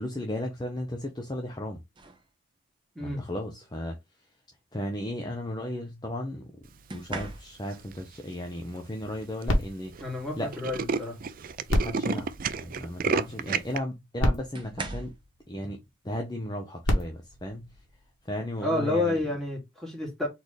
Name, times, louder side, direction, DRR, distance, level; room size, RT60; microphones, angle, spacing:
voice 1, 0.0-1.8 3.0-4.0 4.7-6.5 6.9-9.9 10.4-10.5 11.7-15.1 15.5-15.8 16.0-17.7 18.2-19.2, left 1 dB, 20° left, 0.8 m, -35 dB
sound 1, 1.9-2.3 3.6-3.8 6.9-7.9 9.6-9.7 10.2-11.3 11.7-12.0 13.4-13.5 14.5-15.3 17.0-17.2 17.6-18.0, right 2 dB, 25° right, 0.9 m, -41 dB
voice 2, 2.9-3.3 10.0-11.2 18.6-20.3, left 2 dB, ahead, 2.4 m, -30 dB
Tools, 7.7-8.1 8.8-8.9 9.1-9.2 9.4-9.6 9.9-10.0 10.3-13.8, right 5 dB, 45° right, 0.4 m, -30 dB
sound 2, 9.5-11.1 11.6-13.2 13.9-14.0 14.2-15.8 16.6-18.4 19.1-19.2, equal, 85° left, 1.7 m, -31 dB
4.2 x 3.9 x 3.3 m
head